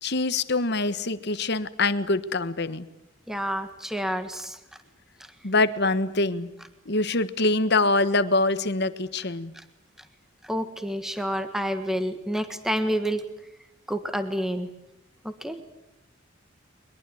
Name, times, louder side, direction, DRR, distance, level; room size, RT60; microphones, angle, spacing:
voice 1, 0.0-2.9 5.4-6.5 6.8-9.5, left 2 dB, 55° left, 13 dB, 1.4 m, -24 dB
voice 2, 3.3-4.6 5.2-5.3 9.5-9.6 10.4-13.2 13.9-14.7 15.2-15.6, equal, ahead, 8 dB, 1.6 m, -29 dB
22.5 x 22.0 x 9.4 m, 0.86 s
head